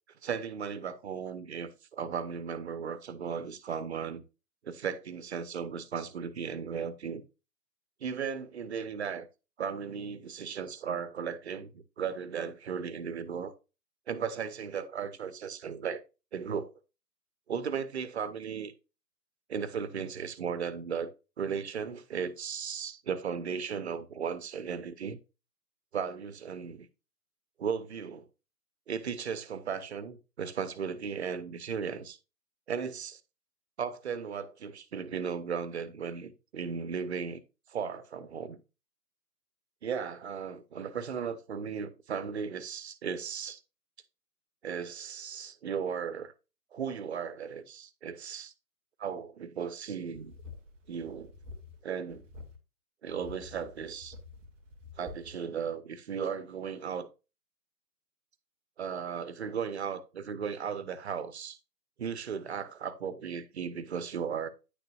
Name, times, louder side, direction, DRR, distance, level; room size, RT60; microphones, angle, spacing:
voice 1, 0.2-4.2 4.6-7.2 8.0-9.3 9.6-13.5 14.1-16.0 16.3-16.7 17.5-18.7 19.5-21.1 21.4-25.2 25.9-26.9 27.6-28.3 28.9-32.2 32.7-33.2 33.8-37.4 37.7-38.6 39.8-43.6 44.6-46.3 46.7-48.5 49.0-50.3 50.9-51.3 51.8-52.3 53.0-54.2 55.0-57.1 58.8-61.6 62.0-64.5, right 6 dB, 45° right, 1.0 m, -36 dB
sound 1, 50.1-51.8 52.1-52.6 53.1-55.3, left 3 dB, 5° right, 0.6 m, -49 dB
9.9 x 6.7 x 2.4 m
figure-of-eight pair, 135°, 48 cm